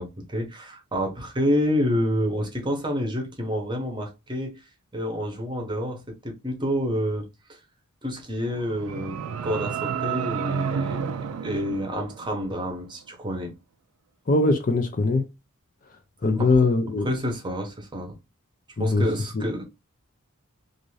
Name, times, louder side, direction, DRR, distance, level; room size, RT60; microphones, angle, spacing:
voice 1, 0.0-4.6 4.9-7.6 8.0-11.2 11.4-13.5 16.4-16.6 17.0-18.1 18.8-19.6, equal, 20° right, 0.8 m, -28 dB
sound 1, 8.4-12.6, right 7 dB, 75° right, 0.3 m, -31 dB
voice 2, 14.3-15.3 16.2-17.1 18.8-19.1 19.3-19.5, left 3 dB, 40° left, 0.5 m, -21 dB
2.6 x 2.5 x 3.1 m
head